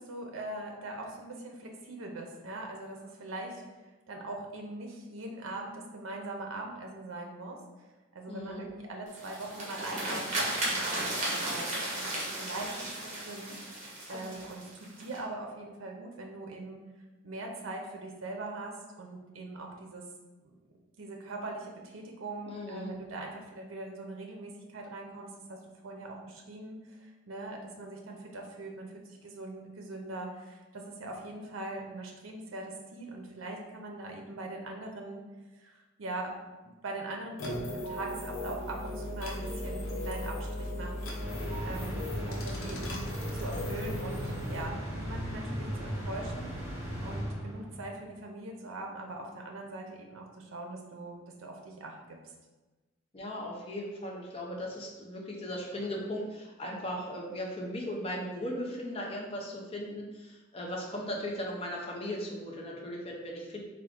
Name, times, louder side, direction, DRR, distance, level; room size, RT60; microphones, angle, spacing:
voice 1, 0.0-3.6 4.1-7.9 8.1-13.6 14.1-16.8 17.2-20.0 20.4-20.5 21.0-25.6 25.8-35.2 35.5-36.3 36.6-41.1 41.6-43.0 43.3-52.2, right 2 dB, 80° right, 1 dB, 0.5 m, -41 dB
voice 2, 8.3-8.6 12.5-12.7 14.1-14.4 22.5-23.0 53.1-63.6, left 1 dB, 30° left, -2 dB, 0.6 m, -37 dB
sound 1, 9.1-15.2, right 1 dB, 35° right, 1.0 m, -35 dB
sound 2, 37.4-44.7, left 1 dB, 80° left, 0.7 m, -37 dB
sound 3, 41.2-47.9, equal, 10° right, 1.0 m, -37 dB
3.5 x 2.4 x 3.5 m, 1.2 s
head